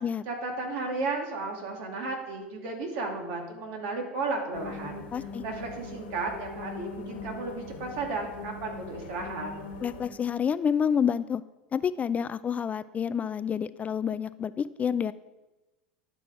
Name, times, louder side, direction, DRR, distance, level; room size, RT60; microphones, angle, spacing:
voice 1, 0.3-5.0 5.4-9.5, right 3 dB, 60° right, 1 dB, 2.5 m, -34 dB
sound 1, 4.5-10.1, left 3 dB, 75° left, 1.4 m, -41 dB
voice 2, 5.1-5.4 9.8-11.4 11.7-15.1, left 7 dB, 25° left, 15 dB, 0.3 m, -28 dB
11.0 x 6.1 x 4.9 m, 1.1 s
hypercardioid pair, 90°, 6 cm